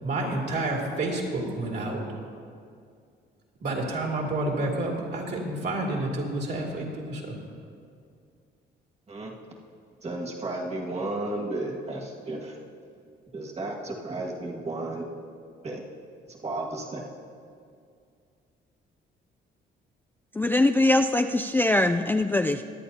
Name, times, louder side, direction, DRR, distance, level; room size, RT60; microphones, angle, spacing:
voice 1, 0.0-2.0 3.6-7.4, right 2 dB, 60° right, -2 dB, 2.7 m, -29 dB
voice 2, 10.0-12.6 13.3-15.1 15.6-15.8 16.3-17.0, right 2 dB, 35° right, -1 dB, 1.9 m, -33 dB
voice 3, 20.3-22.6, left 2 dB, 10° left, 6 dB, 0.3 m, -22 dB
23.5 x 8.6 x 2.8 m, 2.3 s
cardioid pair, 90°, 20 cm